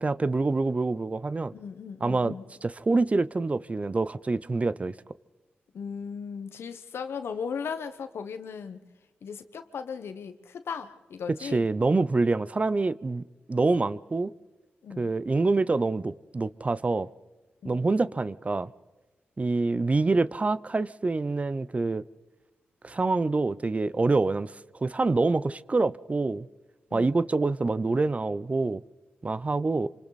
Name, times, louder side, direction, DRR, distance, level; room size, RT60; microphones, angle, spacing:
voice 1, 0.0-1.5 2.0-2.3 2.6-4.9 11.4-13.2 13.5-14.3 15.0-17.1 17.6-18.7 19.4-22.0 22.8-24.5 24.8-26.5 26.9-28.8 29.2-29.9, right 3 dB, 35° right, 0.6 m, -26 dB
voice 2, 1.5-2.4 5.7-8.8 9.2-11.7 14.8-15.1 17.6-17.8 26.9-27.1, left 6 dB, 80° left, 1.3 m, -37 dB
27.0 x 25.5 x 4.2 m
cardioid pair, 65°, 4 cm